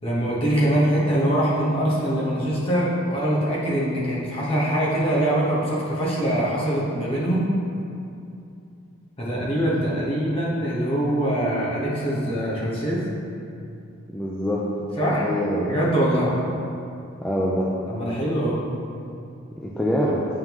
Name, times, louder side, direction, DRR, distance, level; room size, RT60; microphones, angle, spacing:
voice 1, 0.0-7.5 9.2-13.0 15.0-15.3 15.7-16.3 17.9-18.6, right 1 dB, 25° left, -7 dB, 1.2 m, -23 dB
voice 2, 14.1-14.7 15.2-15.7 16.2-16.3 17.2-17.7 19.6-20.2, equal, 5° left, -7 dB, 0.4 m, -24 dB
8.9 x 3.7 x 3.0 m, 2.6 s
head